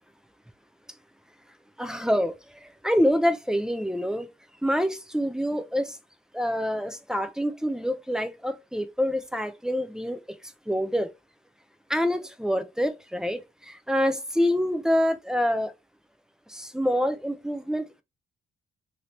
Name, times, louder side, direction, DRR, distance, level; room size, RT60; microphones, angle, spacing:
voice 1, 1.8-2.3 2.6-4.3 4.6-6.0 6.3-10.2 10.7-11.1 11.9-15.7 16.5-18.0, equal, 5° right, 0.4 m, -26 dB
2.8 x 2.7 x 3.0 m
cardioid pair, 90°, 20 cm